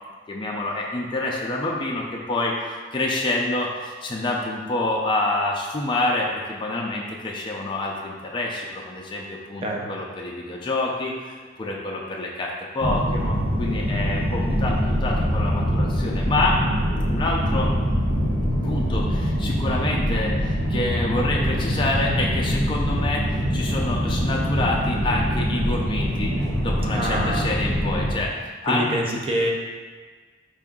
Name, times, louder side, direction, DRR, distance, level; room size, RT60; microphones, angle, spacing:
voice 1, 0.3-16.6 17.1-17.7 18.6-26.3 26.6-28.3 28.6-29.0, left 2 dB, 25° left, -2 dB, 0.4 m, -27 dB
sound 1, 12.8-28.1, equal, 75° right, 1.0 m, -24 dB
voice 2, 26.9-27.6 28.7-29.5, right 1 dB, 30° right, 0 dB, 0.5 m, -26 dB
4.5 x 2.5 x 3.6 m, 1.4 s
head